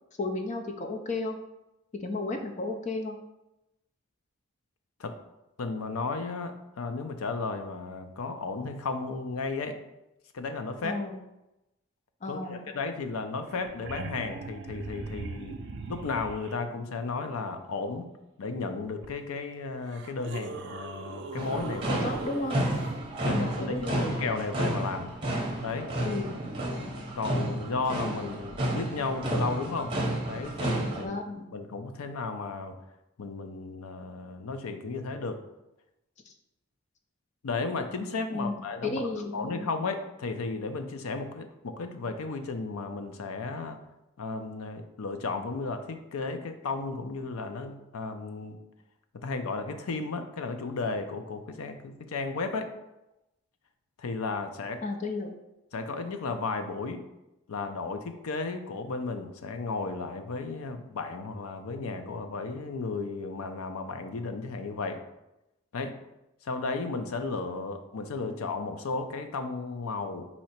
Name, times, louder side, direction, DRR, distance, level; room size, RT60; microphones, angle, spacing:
voice 1, 0.2-1.3 2.0-3.2 10.8-11.2 12.2-12.8 21.9-22.6 23.3-24.2 26.0-26.4 30.9-31.5 36.3-36.4 38.3-38.5 38.8-39.7 54.8-55.3, left 2 dB, 30° left, 4 dB, 0.5 m, -33 dB
voice 2, 5.6-9.8 10.3-11.0 12.3-15.6 15.9-18.1 18.4-22.1 23.2-25.2 25.6-25.9 27.1-29.9 30.3-31.1 31.5-32.8 33.2-35.4 37.4-39.0 39.3-43.8 44.2-48.6 49.1-52.7 54.0-54.8 55.7-57.0 57.5-65.0 65.7-65.9 66.4-70.3, left 4 dB, 80° left, 7 dB, 0.5 m, -34 dB
sound 1, 13.1-13.2 13.4-16.5 19.0-19.1 19.8-22.9 25.4-25.5, right 3 dB, 50° right, 0.4 m, -40 dB
sound 2, 21.4-31.0, right 1 dB, 25° right, 0.7 m, -31 dB
4.2 x 2.8 x 4.3 m, 0.92 s
head